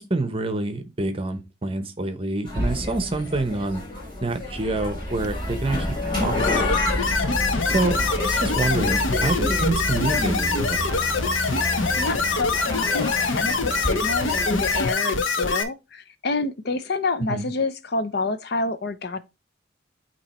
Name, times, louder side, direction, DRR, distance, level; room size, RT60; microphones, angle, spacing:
voice 1, 0.0-3.8 4.2-7.1 7.7-10.9 17.3-17.5, right 2 dB, 30° right, 0.9 m, -27 dB
sound 1, 2.5-14.9, left 1 dB, 25° left, 2.7 m, -28 dB
sound 2, 6.3-15.6, left 4 dB, 80° left, 1.0 m, -24 dB
voice 2, 12.0-19.2, left 3 dB, 55° left, 0.6 m, -28 dB
8.7 x 3.0 x 4.2 m
head